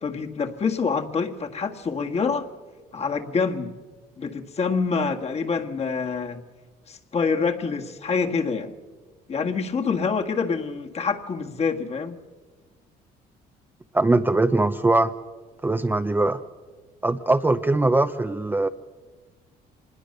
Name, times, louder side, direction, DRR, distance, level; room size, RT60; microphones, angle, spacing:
voice 1, 0.0-2.5 2.9-3.7 4.2-6.4 6.9-8.7 9.3-12.2, left 5 dB, 40° left, 4 dB, 1.8 m, -26 dB
voice 2, 13.9-15.1 15.6-16.4 17.0-18.7, right 2 dB, 10° right, 8 dB, 0.7 m, -21 dB
25.0 x 20.5 x 6.7 m, 1.4 s
cardioid pair, 110°, 17 cm